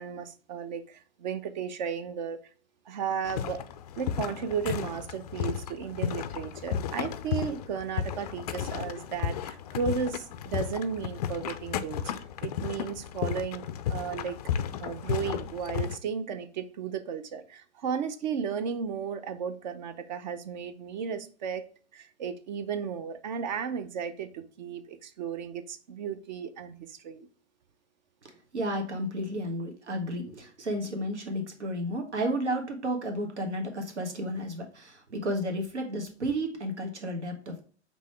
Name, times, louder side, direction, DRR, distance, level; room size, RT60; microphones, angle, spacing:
voice 1, 0.0-2.4 2.9-3.6 4.0-12.1 12.4-13.6 13.9-14.4 14.8-21.7 21.9-27.3, right 7 dB, 40° right, 0.6 m, -34 dB
sound 1, 3.2-16.0, left 8 dB, 35° left, 0.4 m, -34 dB
voice 2, 28.2-37.6, equal, 75° right, 1.4 m, -32 dB
5.3 x 3.1 x 3.1 m
figure-of-eight pair, 110°, 34 cm